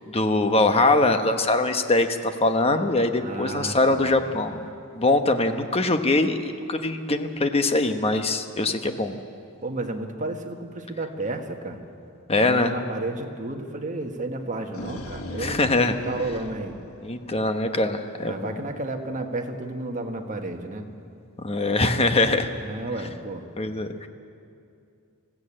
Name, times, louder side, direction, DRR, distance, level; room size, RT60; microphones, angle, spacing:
voice 1, 0.1-9.1 12.3-12.7 15.4-15.9 17.0-18.6 21.4-22.5 23.6-24.1, left 2 dB, 30° left, 7 dB, 1.0 m, -23 dB
voice 2, 3.2-4.2 9.6-11.9 12.3-16.8 18.3-20.9 22.6-23.4, right 2 dB, 35° right, 4 dB, 1.5 m, -32 dB
Lion Roar, 14.4-17.6, left 1 dB, 85° left, 1.4 m, -38 dB
19.5 x 15.5 x 8.8 m, 2.5 s
head